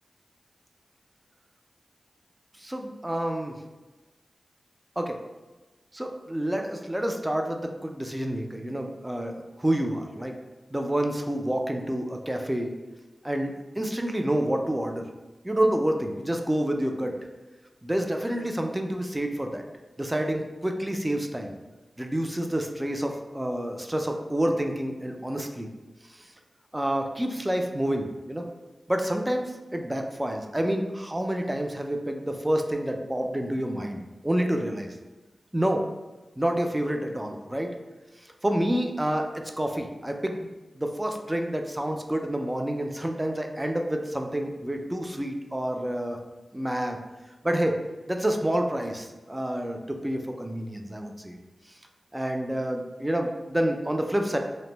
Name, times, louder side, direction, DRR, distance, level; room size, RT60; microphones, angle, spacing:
voice 1, 2.6-3.6 5.0-5.2 5.9-10.3 10.7-12.7 13.2-15.1 15.4-17.1 17.8-19.6 20.0-21.5 22.0-25.7 26.1-26.3 26.7-28.4 28.9-34.0 34.2-34.9 35.5-35.8 36.4-37.7 38.4-40.5 40.8-46.2 46.5-47.0 47.4-47.8 48.1-51.4 52.1-54.4, right 1 dB, 15° right, 4 dB, 0.3 m, -28 dB
2.5 x 2.0 x 3.0 m, 1.2 s
cardioid pair, 60°, 0 cm